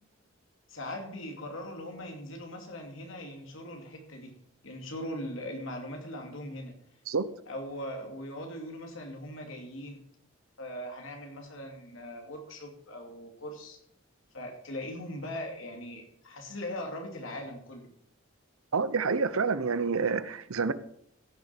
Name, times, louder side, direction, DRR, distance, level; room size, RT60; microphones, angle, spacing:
voice 1, 0.7-4.3 4.6-6.8 7.5-10.0 10.6-13.8 14.3-17.9, left 1 dB, 70° left, 3 dB, 2.7 m, -40 dB
voice 2, 18.7-20.7, right 5 dB, 90° right, 15 dB, 0.8 m, -28 dB
15.5 x 6.5 x 5.9 m, 0.70 s
head